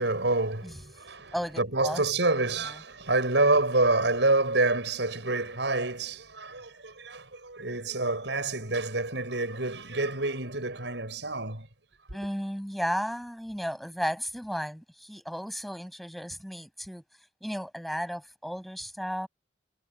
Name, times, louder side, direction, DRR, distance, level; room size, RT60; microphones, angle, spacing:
voice 1, 0.0-11.7 12.1-12.2, right 2 dB, 90° right, 6.7 m, -27 dB
voice 2, 1.3-2.0 12.1-17.0 17.4-19.3, equal, ahead, 7.2 m, -34 dB
head